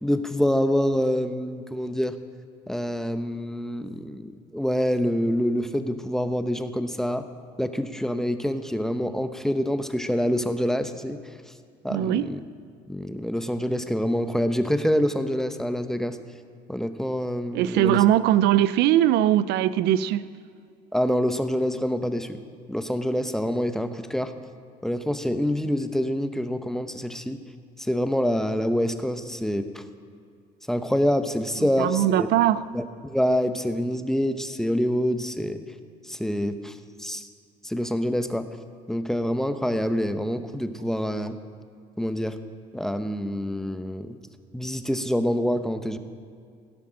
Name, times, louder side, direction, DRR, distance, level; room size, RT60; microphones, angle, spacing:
voice 1, 0.0-2.2 2.7-7.2 7.6-11.2 11.8-12.4 12.9-16.2 16.7-18.0 20.9-22.4 22.7-24.3 24.8-27.4 27.8-29.8 30.7-32.3 32.7-35.6 36.1-37.3 37.6-38.5 38.9-41.4 42.0-42.4 42.7-44.1 44.5-46.0, equal, 5° left, 9 dB, 0.7 m, -26 dB
voice 2, 11.9-12.3 17.5-20.2 31.8-32.6, right 12 dB, 80° right, 15 dB, 0.5 m, -20 dB
16.5 x 8.5 x 6.3 m, 2.3 s
cardioid pair, 110°, 17 cm